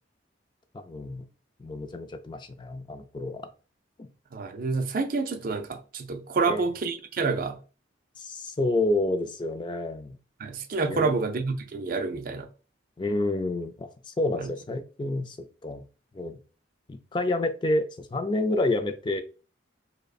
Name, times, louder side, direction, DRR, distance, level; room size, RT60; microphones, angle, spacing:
voice 1, 0.7-1.3 1.6-3.5 4.0-4.1 6.4-6.6 8.2-10.2 10.9-11.2 13.0-15.4 15.6-15.8 16.1-16.4 16.9-19.2, left 2 dB, 25° left, 0.3 m, -29 dB
voice 2, 4.3-7.6 10.4-12.5 14.4-14.5, right 4 dB, 45° right, 0.4 m, -28 dB
5.0 x 2.1 x 2.3 m
head